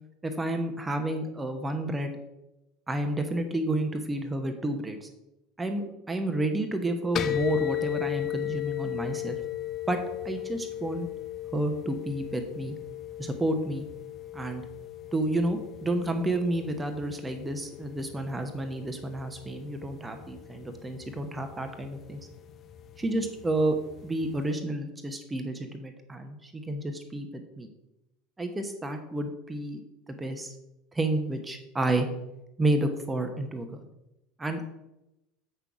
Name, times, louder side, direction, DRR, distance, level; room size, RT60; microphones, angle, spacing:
voice 1, 0.2-2.1 2.9-5.1 5.6-9.4 9.9-10.0 10.2-11.1 11.5-12.7 13.2-13.9 14.3-14.6 15.1-22.3 23.0-27.7 28.4-29.8 30.1-30.6 30.9-32.1 32.6-33.8 34.4-34.7, right 1 dB, 15° right, 6 dB, 1.0 m, -30 dB
sound 1, 7.2-24.5, left 12 dB, 35° left, 0.5 m, -37 dB
8.0 x 6.1 x 4.9 m, 0.91 s
figure-of-eight pair, 70°, 0 cm